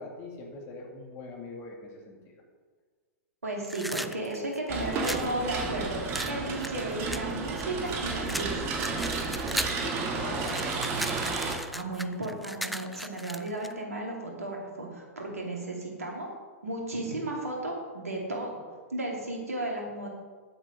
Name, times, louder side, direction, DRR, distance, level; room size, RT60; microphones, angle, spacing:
voice 1, 0.0-2.4 9.4-10.6, left 3 dB, 30° left, 1 dB, 2.2 m, -43 dB
voice 2, 3.4-8.7 11.7-16.3 16.6-18.6 18.9-20.1, right 1 dB, 75° right, 0 dB, 2.5 m, -34 dB
sound 1, 3.6-5.3 6.1-7.9 8.3-9.9 10.2-13.7, equal, ahead, 0.3 m, -36 dB
sound 2, 4.7-11.6, right 4 dB, 30° right, 1.7 m, -32 dB
9.8 x 7.8 x 5.1 m, 1.5 s
figure-of-eight pair, 105°, 8 cm